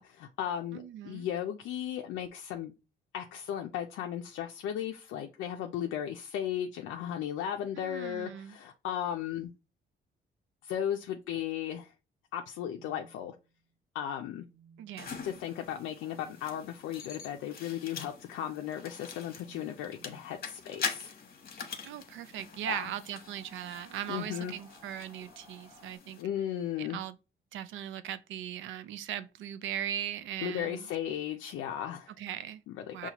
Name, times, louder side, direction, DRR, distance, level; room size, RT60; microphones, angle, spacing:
voice 1, 0.0-2.7 3.1-9.5 10.6-11.9 12.3-13.3 13.9-14.5 15.2-21.1 22.7-22.9 24.1-24.5 26.2-27.0 30.4-32.1 32.7-33.1, left 10 dB, 90° left, 0.4 m, -36 dB
voice 2, 0.7-1.3 7.7-8.6 14.8-15.2 21.8-26.2 26.8-27.2 27.5-30.9 32.2-32.6 32.9-33.1, right 11 dB, 80° right, 0.4 m, -39 dB
sound 1, 12.4-13.7 14.3-15.1 15.9-16.4 17.8-18.2 19.3-20.4 21.8-23.7 24.8-25.2 26.4-26.7, right 5 dB, 15° left, 1.1 m, -62 dB
sound 2, 15.0-26.2, left 6 dB, 50° left, 1.0 m, -44 dB
sound 3, 22.4-26.0, equal, 25° right, 0.9 m, -57 dB
5.6 x 2.3 x 2.9 m
cardioid pair, 90°, 20 cm